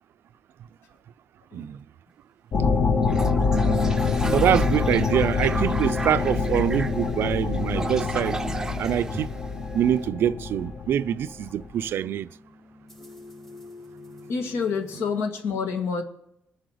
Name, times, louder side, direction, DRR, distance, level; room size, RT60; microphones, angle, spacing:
sound 1, 2.5-11.7, left 4 dB, 45° left, 0.9 m, -25 dB
Toilet flush, 3.0-10.0, right 2 dB, 15° right, 0.5 m, -35 dB
voice 1, 4.3-8.4 8.8-9.3 9.7-12.3, right 10 dB, 60° right, 0.4 m, -24 dB
sound 2, 6.1-15.2, left 2 dB, 5° left, 0.9 m, -47 dB
voice 2, 14.3-16.0, left 5 dB, 80° left, 1.9 m, -27 dB
20.5 x 7.7 x 4.9 m
cardioid pair, 135°, 4 cm